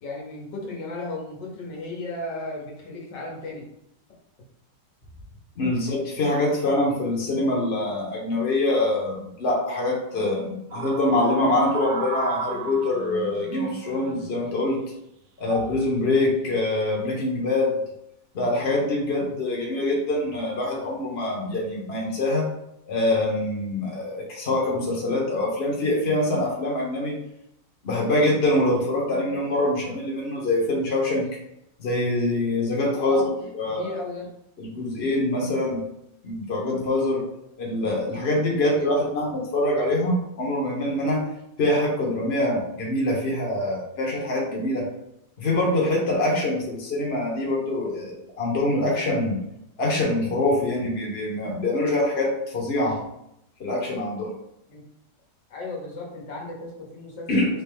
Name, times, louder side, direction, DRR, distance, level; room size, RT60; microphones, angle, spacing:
voice 1, 0.0-3.6 32.9-33.3 33.6-34.3 38.4-39.0 54.7-54.8 55.5-57.4, left 2 dB, 70° left, -2 dB, 1.6 m, -35 dB
voice 2, 5.6-14.8 15.4-17.7 18.3-22.5 22.9-27.1 27.8-31.3 31.8-33.2 33.5-34.0 34.6-35.8 36.2-37.2 37.6-41.2 41.6-44.9 45.4-49.4 49.8-53.0 53.6-54.3 57.3-57.5, left 1 dB, 35° left, -2 dB, 1.2 m, -24 dB
sound 1, 10.7-14.5 15.4-15.8 16.7-17.1, right 5 dB, 70° right, 0.9 m, -34 dB
4.3 x 3.2 x 3.4 m, 0.79 s
omnidirectional pair, 2.1 m